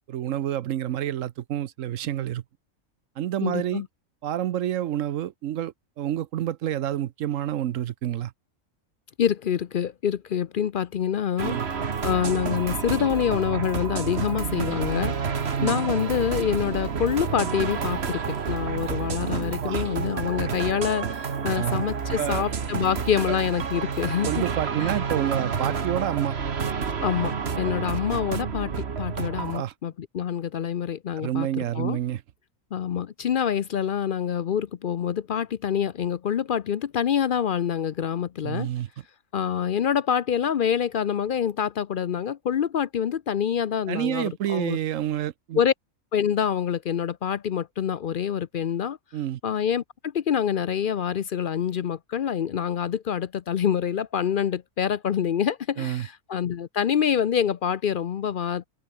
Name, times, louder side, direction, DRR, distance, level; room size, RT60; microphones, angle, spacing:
voice 1, 0.0-2.4 3.2-3.8 4.2-8.3 11.4-11.7 15.6-15.8 19.3-19.8 21.5-21.8 22.2-22.4 24.3-26.3 29.5-29.7 31.2-32.2 38.4-38.9 43.9-45.6 49.1-49.4 55.8-56.1, right 11 dB, 70° right, 1.0 m, -28 dB
voice 2, 3.4-3.9 9.2-11.6 12.0-15.1 15.6-24.4 24.8-24.9 27.0-28.7 29.0-32.0 32.7-38.7 39.3-44.8 45.5-45.7 46.1-49.0 49.4-58.7, left 8 dB, 60° left, 0.6 m, -26 dB
sound 1, 11.4-29.6, right 6 dB, 50° right, 1.6 m, -29 dB
Insect, 15.5-20.5, right 1 dB, 25° right, 5.7 m, -50 dB
omnidirectional pair, 1.4 m